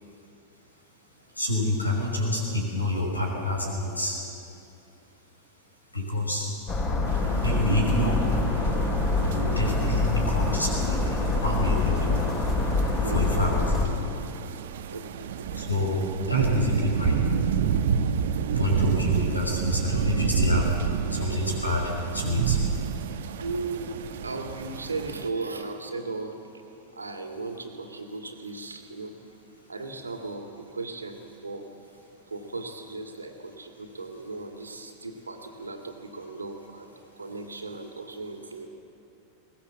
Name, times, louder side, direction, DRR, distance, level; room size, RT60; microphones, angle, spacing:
voice 1, 1.4-4.2 5.9-6.5 7.4-8.2 9.2-12.2 13.0-13.7 15.5-16.0 16.3-17.2 18.5-20.7 21.1-22.6, left 1 dB, 85° left, -1 dB, 5.7 m, -27 dB
sound 1, 6.7-13.9, left 3 dB, 30° left, 5.3 m, -25 dB
sound 2, 7.1-25.3, right 7 dB, 60° right, 1.0 m, -30 dB
voice 2, 13.0-13.4 14.9-15.5 23.4-23.9 24.2-26.4 26.9-29.1 29.7-31.7 32.3-38.7, right 3 dB, 75° right, 4 dB, 2.3 m, -36 dB
21.5 x 19.5 x 7.4 m, 2.7 s
figure-of-eight pair, 90°, 0 cm